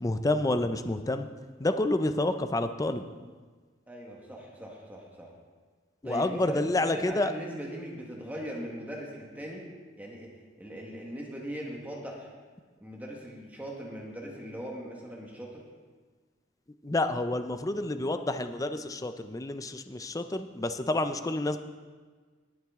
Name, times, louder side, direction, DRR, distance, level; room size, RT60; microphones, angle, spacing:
voice 1, 0.0-1.3 1.6-3.0 6.0-7.3 16.8-21.6, left 2 dB, 20° left, 9 dB, 0.5 m, -29 dB
voice 2, 3.9-5.3 6.0-9.6 10.0-10.3 10.6-12.3 12.8-15.6, equal, 10° right, -2 dB, 1.4 m, -40 dB
18.5 x 7.4 x 3.6 m, 1.5 s
head